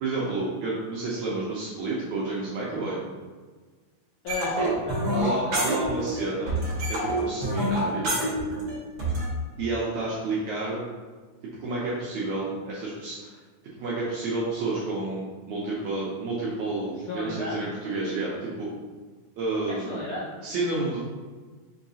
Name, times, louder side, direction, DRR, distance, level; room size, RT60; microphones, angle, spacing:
voice 1, 0.0-3.0 4.6-4.7 5.1-6.6 6.9-8.1 9.6-10.8 11.6-13.3 13.8-18.7 19.4-19.9 20.4-21.0, right 2 dB, 80° right, -6 dB, 1.7 m, -30 dB
voice 2, 4.2-5.8 17.0-17.6 19.7-20.3, left 2 dB, 85° left, -4 dB, 1.7 m, -35 dB
sound 1, 4.3-6.2 6.5-9.3, right 1 dB, 55° right, 1.7 m, -27 dB
5.3 x 2.9 x 2.7 m, 1.4 s
omnidirectional pair, 4.0 m